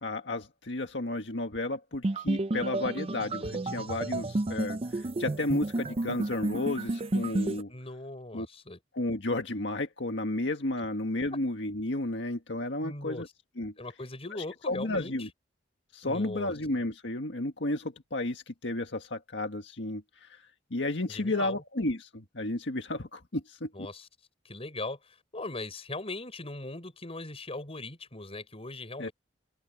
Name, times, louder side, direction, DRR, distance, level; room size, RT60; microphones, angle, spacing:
voice 1, 0.0-7.7 8.3-8.5 8.9-13.3 13.6-13.7 14.7-15.3 15.9-20.4 20.7-23.9 29.0-29.1, left 2 dB, 80° left, 1.7 m, -32 dB
sound 1, 2.0-7.6, right 2 dB, 30° right, 0.5 m, -31 dB
voice 2, 7.7-8.8 12.8-13.2 13.8-15.3 16.0-16.5 21.1-21.6 23.7-24.1 24.4-29.1, left 2 dB, 35° left, 5.8 m, -39 dB
open air
head